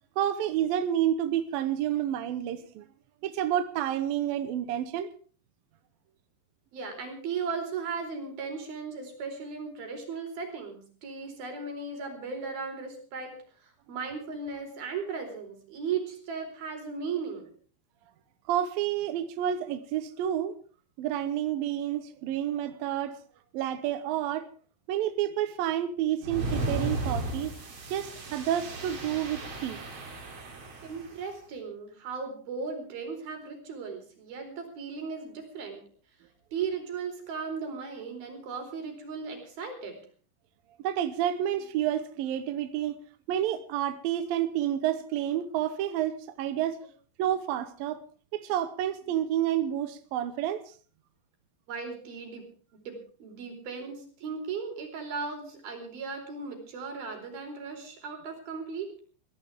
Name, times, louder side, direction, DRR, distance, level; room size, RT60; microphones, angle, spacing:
voice 1, 0.2-2.8 3.2-5.1 18.5-20.5 21.0-23.2 23.5-24.5 24.9-27.5 27.9-29.8 40.8-43.0 43.3-46.8 47.2-48.0 48.3-50.7, right 11 dB, 75° right, 2.2 m, -29 dB
voice 2, 6.7-17.5 30.8-35.8 36.5-40.0 51.7-52.4 52.7-58.9, right 5 dB, 55° right, 6.0 m, -37 dB
sound 1, 26.2-31.1, right 2 dB, 35° right, 3.1 m, -35 dB
23.0 x 16.5 x 3.5 m
omnidirectional pair, 5.2 m